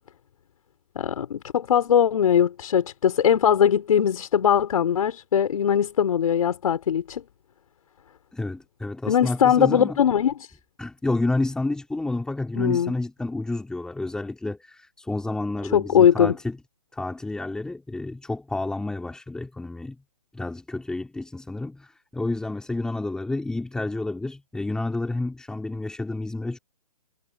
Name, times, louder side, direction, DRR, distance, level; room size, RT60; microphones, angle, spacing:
voice 1, 0.9-7.2 9.1-10.3 12.5-12.9 15.7-16.3, left 8 dB, 60° left, 4.5 m, -20 dB
voice 2, 8.3-10.0 10.8-16.6 16.9-20.0 20.3-26.6, left 2 dB, 5° left, 4.0 m, -30 dB
hypercardioid pair, 150°, 20 cm